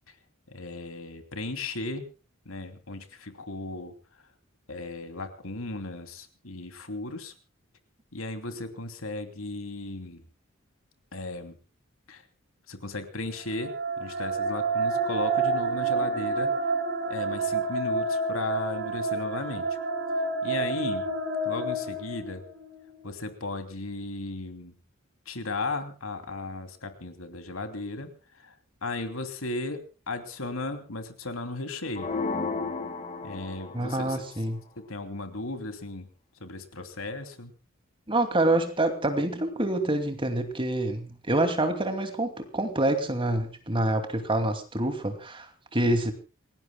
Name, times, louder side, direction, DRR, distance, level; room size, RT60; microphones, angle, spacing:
voice 1, 0.5-2.1 2.4-3.9 4.7-7.3 8.1-10.2 11.1-11.6 12.1-12.2 12.7-16.7 17.1-19.7 20.4-21.2 21.4-22.5 23.0-24.7 25.3-28.6 28.8-32.2 33.2-34.2 34.8-36.1 36.4-37.5, left 2 dB, 85° left, 7 dB, 2.9 m, -36 dB
sound 1, 13.4-22.6, right 3 dB, 55° right, 7.9 m, -29 dB
sound 2, 32.0-34.0, left 4 dB, 35° left, 2.1 m, -33 dB
voice 2, 33.7-34.6 38.1-46.1, right 1 dB, 25° right, 7 dB, 2.5 m, -27 dB
28.0 x 18.5 x 2.3 m, 0.33 s
head